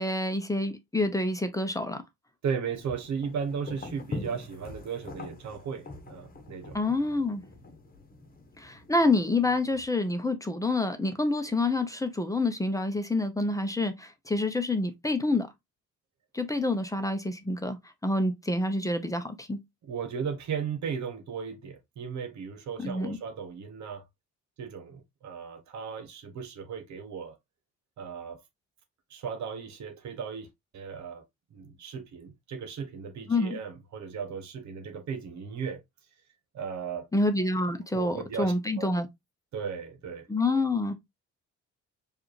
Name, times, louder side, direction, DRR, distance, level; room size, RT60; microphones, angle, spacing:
voice 1, 0.0-2.0 6.7-7.4 8.6-15.5 16.3-19.6 22.8-23.2 33.3-33.6 37.1-39.1 40.3-40.9, left 2 dB, 10° left, 0.8 m, -27 dB
voice 2, 2.4-6.8 19.8-24.0 24.6-27.4 28.0-28.4 29.1-30.5 30.7-31.2 31.5-35.8 36.5-37.1 37.9-38.9 39.5-40.3, right 6 dB, 70° right, 1.2 m, -36 dB
sound 1, 2.7-9.8, left 2 dB, 30° left, 1.2 m, -44 dB
4.6 x 2.6 x 3.1 m
cardioid pair, 90°, 30 cm